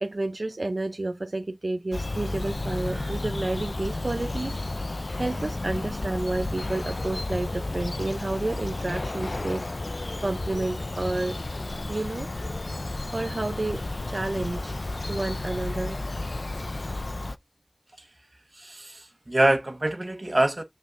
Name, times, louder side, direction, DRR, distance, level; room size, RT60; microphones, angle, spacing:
voice 1, 0.0-4.7 5.2-9.6 10.2-11.4 11.9-12.3 13.1-14.7 15.1-16.0, right 2 dB, 90° right, 0.6 m, -30 dB
Bird vocalization bird call bird song, 1.9-17.4, left 2 dB, 80° left, 0.4 m, -32 dB
voice 2, 18.5-20.6, right 1 dB, 55° right, 1.2 m, -25 dB
6.7 x 5.5 x 2.6 m
wide cardioid pair, 40°, 0 cm